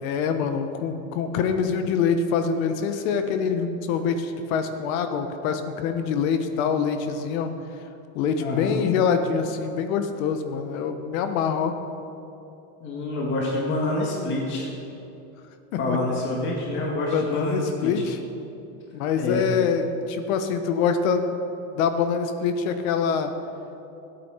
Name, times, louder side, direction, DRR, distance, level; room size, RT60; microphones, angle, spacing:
voice 1, 0.0-7.5 8.1-11.7 15.9-16.0 17.1-18.2 18.9-21.3 21.7-23.3, left 6 dB, 70° left, 8 dB, 1.3 m, -25 dB
voice 2, 8.4-8.7 12.8-14.7 15.8-18.0 19.2-19.4, left 2 dB, 30° left, -3 dB, 1.8 m, -27 dB
14.5 x 8.6 x 5.7 m, 2.9 s
supercardioid pair, 170°, 42 cm